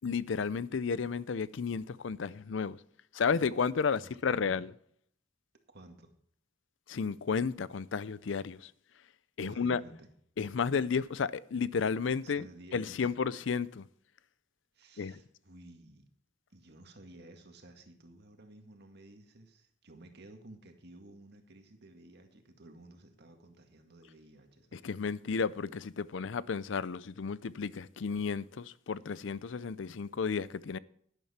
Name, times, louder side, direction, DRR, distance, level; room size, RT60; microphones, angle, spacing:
voice 1, 0.0-2.8 3.1-4.7 6.9-8.7 9.4-9.8 10.4-12.5 12.7-13.8 15.0-15.2 24.7-30.8, left 5 dB, 70° left, 0.5 m, -32 dB
voice 2, 4.0-4.6 5.7-6.1 9.4-10.1 12.2-13.1 14.7-16.1 16.5-24.9, right 2 dB, 60° right, 1.9 m, -54 dB
11.5 x 10.5 x 4.3 m
head